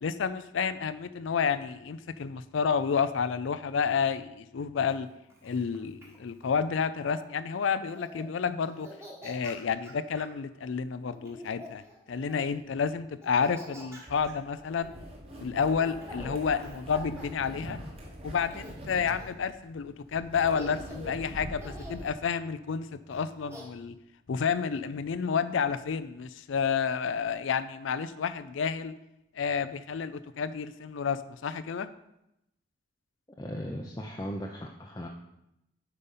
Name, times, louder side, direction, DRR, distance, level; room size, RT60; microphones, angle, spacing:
voice 1, 0.0-5.1 5.4-8.9 9.2-11.8 12.1-14.9 15.4-17.8 18.2-23.9 24.3-28.9 29.3-31.9, left 6 dB, 75° left, 13 dB, 0.4 m, -30 dB
Laughter, 4.9-7.3 7.8-8.3 8.6-10.4 11.1-12.6 13.2-18.1 18.5-19.5 20.1-20.2 20.5-21.2 21.6-22.1 23.1-23.6, left 1 dB, 15° right, 1.3 m, -48 dB
sound 1, 14.1-22.1, equal, 30° right, 1.4 m, -43 dB
voice 2, 33.4-35.1, equal, 15° left, 0 dB, 0.5 m, -37 dB
8.2 x 5.2 x 5.5 m, 0.85 s
head